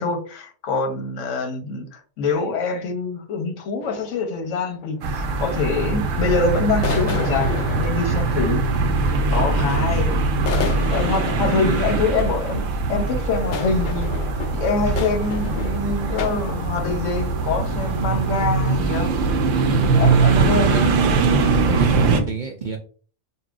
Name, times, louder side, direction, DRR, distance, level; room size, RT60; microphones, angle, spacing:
voice 1, 0.0-8.6 9.3-10.1 10.9-12.6 12.9-14.1 14.5-19.1 20.0-20.9, left 3 dB, 85° left, 1.1 m, -25 dB
sound 1, 3.8-5.1 5.5-6.1 6.8-9.8 10.3-16.6, left 6 dB, 60° left, 0.5 m, -32 dB
sound 2, 5.0-22.2, right 3 dB, 85° right, 1.0 m, -21 dB
voice 2, 8.3-8.6 11.2-11.7 19.7-20.0 20.3-20.9 21.8-22.8, right 6 dB, 65° right, 0.5 m, -27 dB
5.4 x 2.3 x 2.4 m
omnidirectional pair, 1.3 m